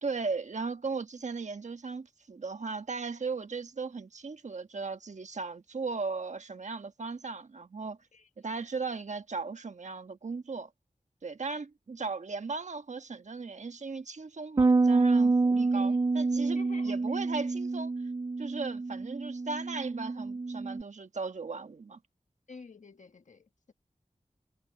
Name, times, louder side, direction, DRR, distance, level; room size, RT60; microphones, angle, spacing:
voice 1, 0.0-8.0 8.4-10.7 11.2-17.9 18.4-22.0, right 4 dB, 70° right, 1.3 m, -37 dB
voice 2, 8.1-8.6 15.7-16.0 16.4-17.0 22.5-23.7, left 4 dB, 80° left, 1.5 m, -51 dB
Bass guitar, 14.6-20.8, right 3 dB, 30° right, 0.4 m, -27 dB
wide cardioid pair, 85°, 13 cm